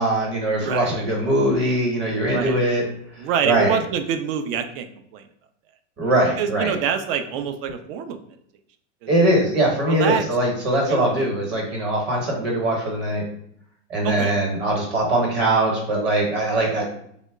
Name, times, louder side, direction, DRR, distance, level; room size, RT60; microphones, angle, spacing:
voice 1, 0.0-2.9 3.4-3.8 6.0-6.8 9.1-13.2 13.9-16.9, right 1 dB, 30° right, -1 dB, 1.0 m, -21 dB
voice 2, 0.5-1.0 2.3-2.5 3.2-4.9 5.1-5.2 6.4-8.2 9.0-9.4 9.9-10.2 10.9-11.2 14.0-14.4, right 7 dB, 50° right, 8 dB, 0.5 m, -26 dB
2.9 x 2.1 x 3.4 m, 0.69 s
supercardioid pair, 130°, 36 cm